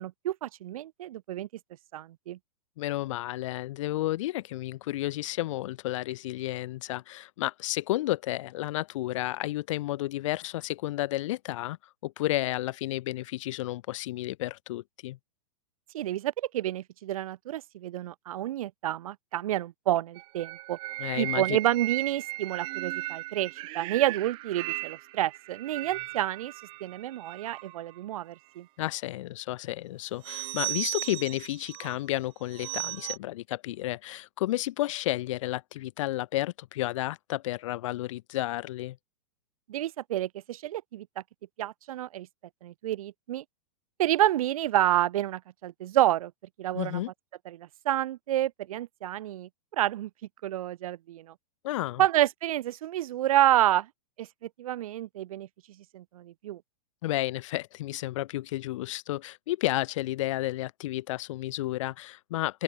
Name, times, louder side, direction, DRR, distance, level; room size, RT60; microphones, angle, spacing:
voice 1, 0.0-1.5 1.9-2.4 15.9-20.8 21.2-26.5 26.8-28.7 39.7-41.1 41.6-42.3 42.6-43.4 44.0-46.3 46.6-47.0 47.5-50.1 50.4-51.3 52.0-53.9 54.2-54.3 54.6-55.5 55.9-56.6, right 13 dB, 65° right, 1.2 m, -29 dB
voice 2, 2.8-11.8 12.0-15.2 21.0-21.6 28.8-39.0 46.7-47.1 51.6-52.0 57.0-62.6, left 16 dB, 50° left, 3.3 m, -32 dB
sound 1, 20.2-28.0 30.2-32.0 32.5-33.2, right 21 dB, 25° right, 0.8 m, -36 dB
open air
supercardioid pair, 160°, 20 cm